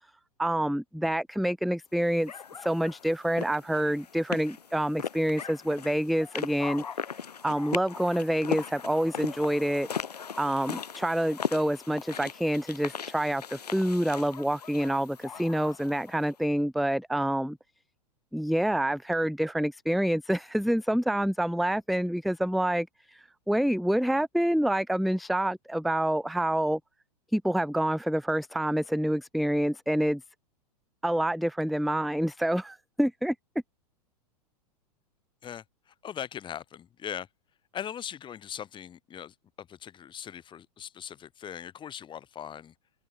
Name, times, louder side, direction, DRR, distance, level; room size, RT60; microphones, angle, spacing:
voice 1, 0.4-2.3 2.6-6.8 7.4-9.9 10.4-17.6 18.3-26.8 27.3-30.2 31.0-33.4, right 1 dB, ahead, 0.3 m, -27 dB
sound 1, 2.3-16.3, left 7 dB, 75° left, 2.3 m, -38 dB
voice 2, 35.4-37.3 37.7-42.7, left 9 dB, 25° left, 3.5 m, -40 dB
open air
figure-of-eight pair, 100°, 21 cm